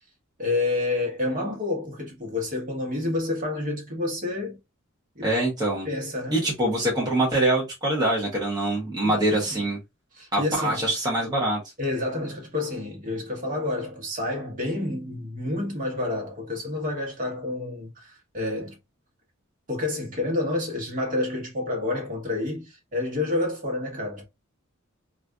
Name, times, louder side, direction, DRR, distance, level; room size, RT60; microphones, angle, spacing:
voice 1, 0.4-4.6 5.1-5.3 5.8-6.4 9.0-9.6 10.1-10.9 11.8-18.8 19.7-24.2, left 2 dB, 40° right, 1.2 m, -29 dB
voice 2, 5.2-5.9 6.3-9.8 10.3-11.6, right 1 dB, 20° right, 0.8 m, -24 dB
4.0 x 2.4 x 2.3 m
head